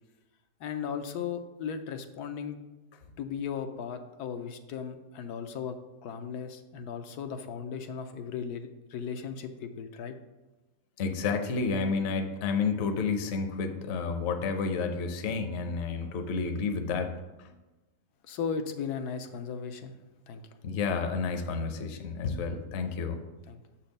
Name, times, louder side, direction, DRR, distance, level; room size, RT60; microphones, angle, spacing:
voice 1, 0.6-2.6 3.2-5.7 6.0-10.2 18.2-20.0 20.3-20.6 23.5-23.6, left 6 dB, 90° left, 7 dB, 1.2 m, -36 dB
voice 2, 11.0-17.1 17.4-17.5 20.6-23.2, left 4 dB, 55° left, 6 dB, 0.8 m, -30 dB
6.9 x 4.4 x 5.2 m, 1.1 s
omnidirectional pair, 1.6 m